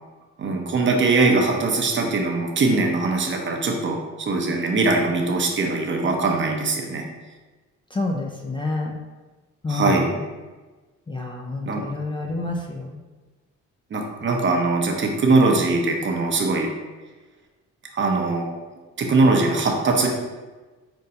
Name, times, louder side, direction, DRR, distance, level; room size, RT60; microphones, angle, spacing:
voice 1, 0.4-7.0 9.7-10.0 11.6-11.8 13.9-16.7 17.9-18.5 19.0-20.1, right 3 dB, 40° right, 1 dB, 0.7 m, -21 dB
voice 2, 7.9-9.0 9.6-10.3 11.1-13.0, left 3 dB, 15° left, 0 dB, 0.4 m, -28 dB
5.2 x 2.2 x 2.8 m, 1.2 s
cardioid pair, 90°, 30 cm